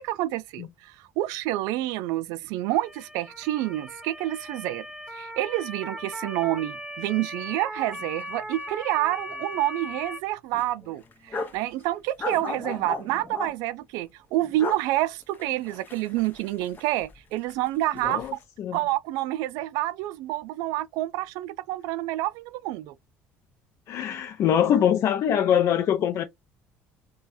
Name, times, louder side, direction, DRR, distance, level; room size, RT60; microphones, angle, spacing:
voice 1, 0.0-4.8 5.1-18.4 18.7-22.9, right 15 dB, 80° right, 0.3 m, -28 dB
Motor vehicle (road) / Siren, 2.7-10.2, equal, 10° right, 0.8 m, -38 dB
sound 1, 7.9-8.0 8.3-8.4 8.9-9.6 9.9-10.0 10.5-11.6 12.2-13.5 14.4-14.8 15.2-17.2 17.5-18.3, left 3 dB, 30° left, 0.8 m, -36 dB
voice 2, 18.0-18.8 23.9-26.2, left 9 dB, 60° left, 0.4 m, -23 dB
3.2 x 2.2 x 2.6 m
supercardioid pair, 85°, 6 cm